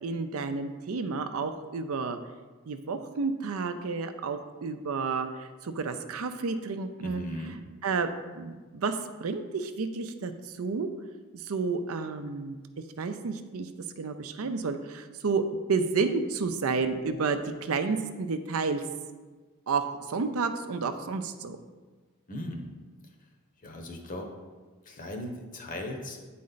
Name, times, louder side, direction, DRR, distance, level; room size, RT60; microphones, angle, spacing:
voice 1, 0.0-2.2 2.7-7.2 7.8-10.9 11.3-12.6 13.0-13.7 14.0-15.4 15.7-18.8 19.7-21.6, right 4 dB, 80° right, 8 dB, 0.5 m, -31 dB
voice 2, 7.0-7.6 22.3-22.7 23.0-23.3 23.6-24.3 24.8-26.2, left 1 dB, 40° left, 3 dB, 0.9 m, -38 dB
8.5 x 4.2 x 4.0 m, 1.3 s
head